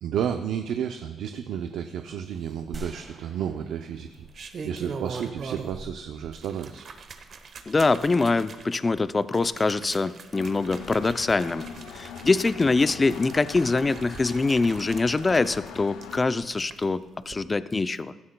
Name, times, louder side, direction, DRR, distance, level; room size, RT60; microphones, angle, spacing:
voice 1, 0.0-6.9, right 8 dB, 80° right, 7 dB, 0.5 m, -32 dB
sound 1, 2.6-3.3 4.1-5.9 6.2-16.8 17.2-17.3, right 5 dB, 55° right, 0.9 m, -42 dB
sound 2, 2.7-5.0, right 1 dB, 30° right, 1.5 m, -44 dB
voice 2, 7.7-11.6 11.9-18.1, left 3 dB, 25° left, 14 dB, 0.4 m, -24 dB
Engine, 10.3-16.2, left 7 dB, 85° left, 0.7 m, -41 dB
15.5 x 13.0 x 2.2 m, 1.2 s
cardioid pair, 90°, 0 cm